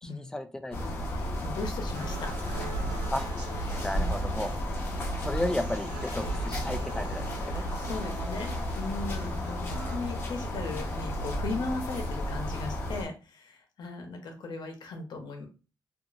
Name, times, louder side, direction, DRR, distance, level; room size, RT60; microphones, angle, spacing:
voice 1, 0.0-1.1 3.1-3.3 3.8-4.5 5.2-7.7, left 1 dB, 10° left, 8 dB, 0.3 m, -34 dB
sound 1, 0.7-13.1, equal, 30° left, 0.9 m, -33 dB
voice 2, 1.1-2.7 7.4-8.5 8.7-15.5, left 3 dB, 65° left, 4 dB, 0.8 m, -38 dB
sound 2, 1.9-9.9, right 3 dB, 60° right, 1.2 m, -46 dB
2.8 x 2.5 x 2.4 m, 0.31 s
cardioid pair, 135°, 8 cm